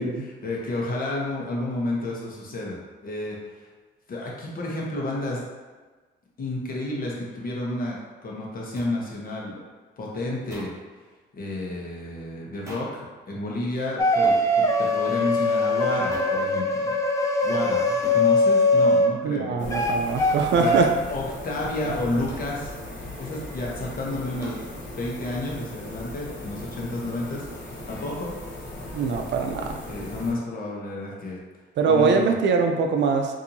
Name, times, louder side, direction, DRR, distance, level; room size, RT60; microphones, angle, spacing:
voice 1, 0.0-3.6 4.1-5.4 6.4-9.6 10.0-10.7 11.3-17.0 17.4-20.2 20.5-20.8 21.1-22.7 23.2-27.5 27.9-28.3 29.9-31.4 31.8-32.3, left 2 dB, 45° left, -3 dB, 1.0 m, -31 dB
sound 1, 8.7-8.9 10.5-10.8 12.7-13.0 14.2-14.5 16.1-16.4 18.0-18.3 20.3-20.5 22.3-22.5 24.4-24.7, equal, 15° right, 1.3 m, -40 dB
sound 2, 14.0-19.1 19.7-20.4 20.6-20.8, left 2 dB, 15° left, 0.5 m, -21 dB
voice 2, 19.2-20.9 21.9-22.0 28.9-29.7 31.8-33.4, right 5 dB, 65° right, 4 dB, 0.5 m, -23 dB
sound 3, 19.6-30.3, left 1 dB, 70° left, 1.1 m, -38 dB
4.2 x 2.7 x 2.7 m, 1.3 s
cardioid pair, 90°, 20 cm